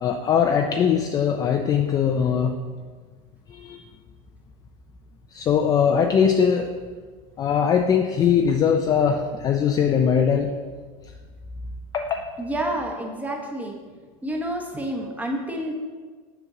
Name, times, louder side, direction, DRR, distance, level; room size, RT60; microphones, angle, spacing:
voice 1, 0.0-2.6 3.5-3.8 5.3-6.7 7.4-10.5 11.9-12.2, left 7 dB, 20° left, 3 dB, 0.3 m, -21 dB
voice 2, 12.4-13.8 14.2-15.7, right 1 dB, 10° right, 1 dB, 0.9 m, -29 dB
6.8 x 5.9 x 3.8 m, 1.5 s
supercardioid pair, 140°, 17 cm